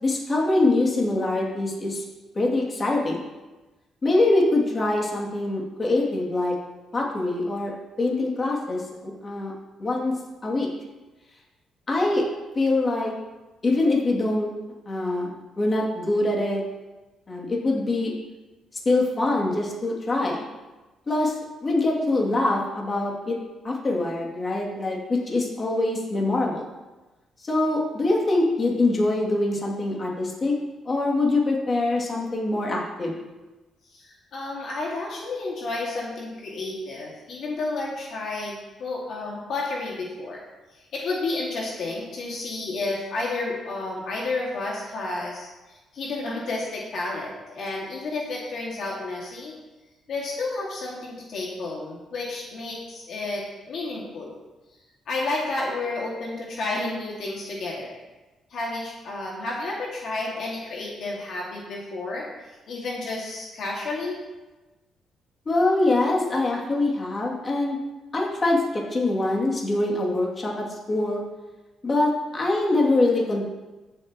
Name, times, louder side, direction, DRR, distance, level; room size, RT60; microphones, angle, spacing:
voice 1, 0.0-2.0 2.3-3.2 4.0-6.6 6.9-7.7 8.0-9.5 9.8-10.1 10.4-10.7 11.9-12.2 12.5-13.1 13.6-14.5 14.9-16.6 17.3-18.1 18.8-20.4 21.1-21.4 21.6-23.4 23.6-26.7 27.4-30.6 30.9-33.2 65.5-67.8 68.1-71.2 71.8-73.5, left 2 dB, 35° left, -3 dB, 2.5 m, -24 dB
voice 2, 33.9-40.4 40.9-49.5 50.1-54.3 55.1-58.0 58.5-62.3 62.7-64.2, left 2 dB, 65° left, -3 dB, 2.0 m, -31 dB
15.0 x 7.7 x 3.0 m, 1.1 s
cardioid pair, 90°, 0 cm